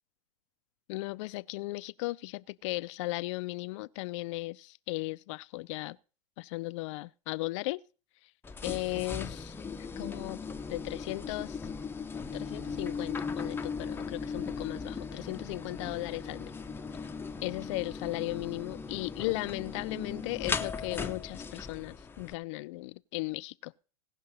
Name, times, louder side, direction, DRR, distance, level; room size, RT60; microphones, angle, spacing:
voice 1, 0.9-6.0 6.4-7.8 8.6-11.6 12.3-16.5 17.4-23.8, left 21 dB, 55° left, 0.5 m, -36 dB
sound 1, 8.4-22.3, left 5 dB, 10° left, 0.8 m, -38 dB
17.5 x 5.9 x 5.4 m
hypercardioid pair, 105°, 19 cm